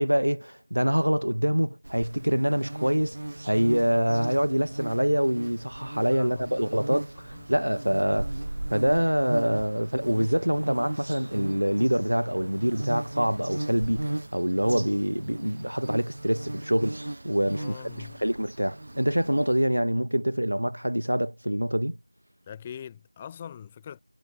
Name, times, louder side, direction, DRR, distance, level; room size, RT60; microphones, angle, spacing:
voice 1, 0.0-3.2 3.4-8.3 8.7-17.8 18.2-22.0, equal, 70° right, 0.6 m, -25 dB
sound 1, 1.8-19.6, right 1 dB, 35° right, 1.5 m, -37 dB
voice 2, 6.1-6.5 7.2-7.5 17.5-18.2 22.5-24.0, left 8 dB, 5° left, 0.9 m, -42 dB
figure-of-eight pair, 175°, 0 cm